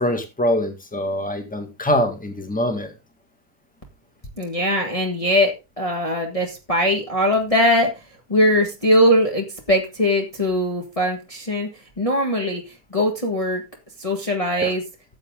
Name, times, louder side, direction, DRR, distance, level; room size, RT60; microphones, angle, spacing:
voice 1, 0.0-2.9 14.6-14.7, left 1 dB, 5° left, 1.9 m, -23 dB
voice 2, 4.4-7.9 8.3-11.7 12.0-12.6 12.9-13.6 14.0-14.8, equal, 20° left, 1.7 m, -20 dB
14.0 x 7.9 x 3.8 m
omnidirectional pair, 1.8 m